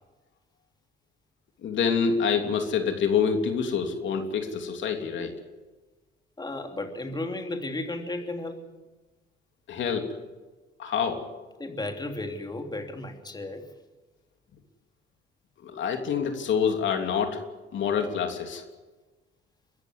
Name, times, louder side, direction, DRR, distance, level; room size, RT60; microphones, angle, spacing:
voice 1, 1.6-5.3 9.7-10.1 10.8-11.2 15.6-17.4 17.7-18.6, left 6 dB, 70° left, 5 dB, 3.2 m, -26 dB
voice 2, 6.4-8.7 11.6-13.7, left 2 dB, 20° left, 4 dB, 3.1 m, -34 dB
23.5 x 14.0 x 9.6 m, 1.2 s
cardioid pair, 90°, 20 cm